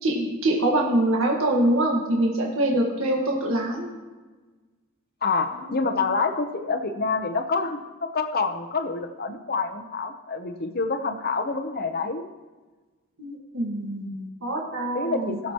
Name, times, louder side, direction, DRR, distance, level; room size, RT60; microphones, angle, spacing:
voice 1, 0.0-3.9 5.6-5.7 13.2-15.4, right 1 dB, 75° right, -2 dB, 1.7 m, -24 dB
voice 2, 5.2-12.3 14.9-15.5, left 4 dB, 45° left, 6 dB, 0.9 m, -27 dB
21.0 x 7.1 x 3.1 m, 1.3 s
head